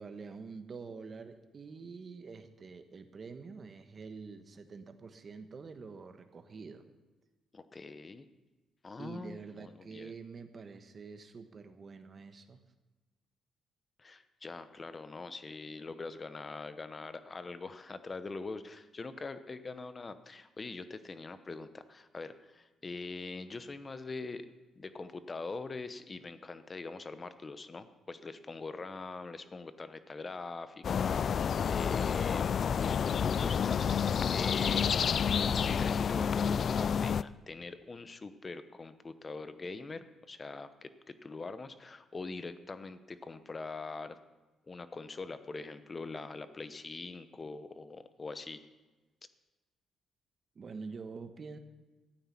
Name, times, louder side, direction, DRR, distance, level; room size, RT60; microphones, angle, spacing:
voice 1, 0.0-6.8 9.0-12.6 50.5-51.6, right 4 dB, 40° right, 8 dB, 1.2 m, -46 dB
voice 2, 7.5-8.3 8.8-10.1 14.0-35.0 35.6-44.2 44.7-48.6, left 3 dB, 30° left, 12 dB, 0.9 m, -43 dB
sound 1, 30.8-37.2, left 7 dB, 50° left, 0.3 m, -29 dB
13.0 x 9.2 x 5.8 m, 1.2 s
cardioid pair, 90°, 0 cm